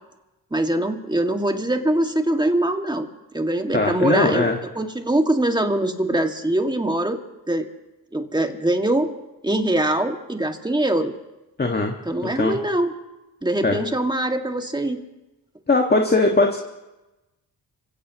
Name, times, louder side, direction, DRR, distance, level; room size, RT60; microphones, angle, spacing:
voice 1, 0.5-3.1 3.3-4.5 4.8-7.2 7.5-7.7 8.1-9.1 9.4-11.1 12.1-12.9 13.4-15.0, right 1 dB, 10° right, 4 dB, 2.0 m, -22 dB
voice 2, 3.7-4.6 11.6-12.0 12.2-12.6 13.6-13.8 15.7-16.6, left 2 dB, 25° left, 2 dB, 1.7 m, -20 dB
26.5 x 16.5 x 3.0 m, 1.0 s
cardioid pair, 70°, 40 cm